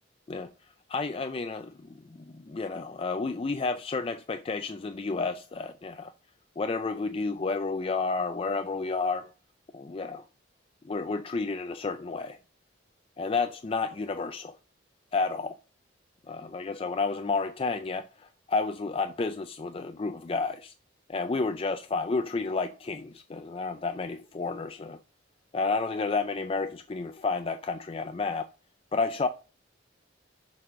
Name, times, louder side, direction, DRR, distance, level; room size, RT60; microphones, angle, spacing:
voice 1, 0.9-6.1 6.6-9.3 9.7-10.2 10.8-12.4 13.2-14.6 15.1-15.6 16.3-20.7 21.1-25.0 25.5-28.5 28.9-29.3, left 4 dB, 30° left, 0.4 m, -31 dB
6.8 x 4.2 x 6.1 m
head